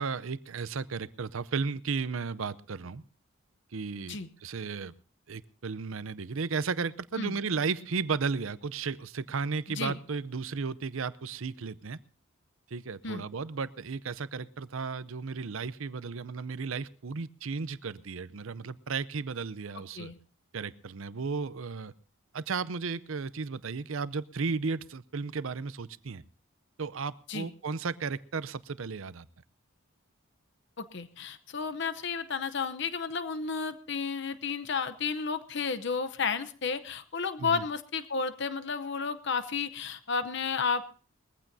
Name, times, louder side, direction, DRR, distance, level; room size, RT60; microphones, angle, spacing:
voice 1, 0.0-3.0 3.7-4.9 5.3-12.0 12.7-20.1 20.5-21.9 22.3-26.2 26.8-29.3 37.4-37.6, right 5 dB, 70° right, 16 dB, 0.6 m, -34 dB
voice 2, 9.7-10.0 13.0-13.2 20.0-20.2 27.3-27.5 30.8-40.8, left 5 dB, 55° left, 11 dB, 0.8 m, -32 dB
21.5 x 15.0 x 2.7 m, 0.39 s
head